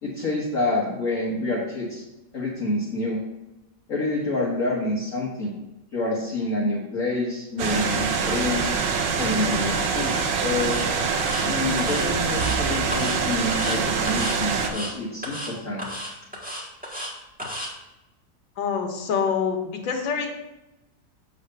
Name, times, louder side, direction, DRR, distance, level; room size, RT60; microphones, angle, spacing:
voice 1, 0.0-2.0 2.3-3.2 3.9-5.6 5.9-8.7 9.1-10.8 11.4-15.8, left 2 dB, 50° left, -6 dB, 1.5 m, -27 dB
sound 1, 7.6-14.7, right 5 dB, 80° right, 1.5 m, -25 dB
sound 2, 10.0-10.3 10.6-10.9 11.2-11.4 11.8-12.6 12.9-13.2 13.5-13.8 14.1-14.4 14.6-14.9 15.2-15.5 15.8-17.1 17.4-17.7, equal, 5° right, 1.3 m, -33 dB
voice 2, 18.6-20.3, left 6 dB, 85° left, 3 dB, 1.8 m, -26 dB
7.8 x 3.3 x 6.4 m, 0.98 s
omnidirectional pair, 2.0 m